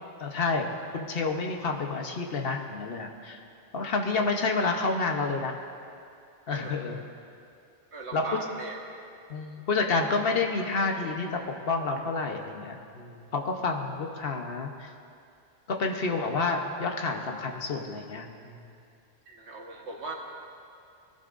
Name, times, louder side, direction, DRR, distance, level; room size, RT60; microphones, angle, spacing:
voice 1, 0.2-3.4 3.7-5.6 6.5-7.0 8.1-8.2 9.3-11.3 11.6-14.9 15.7-18.6, left 3 dB, 60° left, 3 dB, 1.2 m, -29 dB
voice 2, 7.9-8.9 15.9-16.1 19.3-20.1, right 3 dB, 85° right, 0 dB, 1.7 m, -39 dB
19.5 x 11.5 x 2.6 m, 2.5 s
omnidirectional pair, 1.1 m